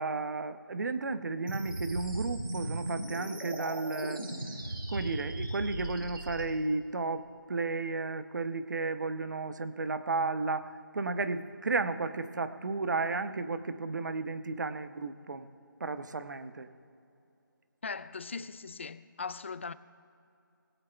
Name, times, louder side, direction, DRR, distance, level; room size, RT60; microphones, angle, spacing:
voice 1, 0.0-4.2 4.9-15.5 15.8-16.7, right 3 dB, 55° right, 0.8 m, -33 dB
sound 1, 1.5-6.4, right 1 dB, 90° right, 3.3 m, -37 dB
voice 2, 17.8-19.7, left 4 dB, 35° left, 0.4 m, -39 dB
21.0 x 8.6 x 3.3 m
figure-of-eight pair, 165°, 12 cm